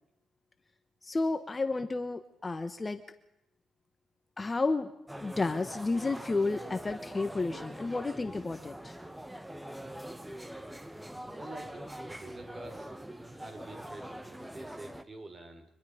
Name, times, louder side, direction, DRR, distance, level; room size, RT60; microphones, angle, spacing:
voice 1, 1.0-3.0 4.4-4.9 5.2-9.0, left 3 dB, 25° left, 9 dB, 1.2 m, -31 dB
sound 1, 5.1-15.0, right 1 dB, 5° right, 1.3 m, -43 dB
voice 2, 11.3-12.9 13.2-15.7, right 2 dB, 25° right, 6 dB, 4.7 m, -47 dB
25.0 x 21.0 x 5.1 m, 0.88 s
cardioid pair, 90°, 0 cm